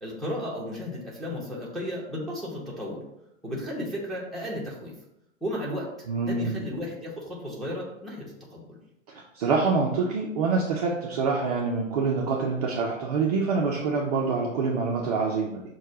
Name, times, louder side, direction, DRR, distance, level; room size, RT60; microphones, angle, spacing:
voice 1, 0.0-3.0 3.4-5.0 5.4-5.9 6.2-8.8, equal, ahead, -6 dB, 0.7 m, -34 dB
voice 2, 6.1-6.6 9.1-15.6, right 4 dB, 30° right, -2 dB, 0.5 m, -26 dB
6.2 x 2.2 x 3.8 m, 0.84 s
figure-of-eight pair, 115°, 40 cm